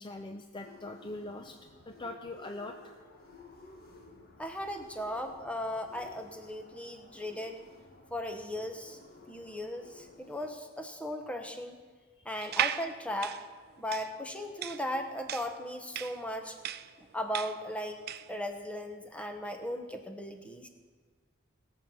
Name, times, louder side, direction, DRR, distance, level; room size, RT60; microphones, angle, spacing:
voice 1, 0.0-1.6 1.9-2.8 5.1-5.3, left 2 dB, 25° left, 5 dB, 0.6 m, -42 dB
sound 1, 0.6-10.5, left 3 dB, 50° left, 1.7 m, -55 dB
voice 2, 4.4-7.6 8.1-9.0 9.3-11.8 12.2-13.4 13.8-16.6 17.0-18.0 18.3-20.7, left 1 dB, 5° left, 5 dB, 1.0 m, -37 dB
sound 2, 12.4-18.4, right 10 dB, 55° right, 0.4 m, -36 dB
19.0 x 7.2 x 5.6 m, 1.5 s
head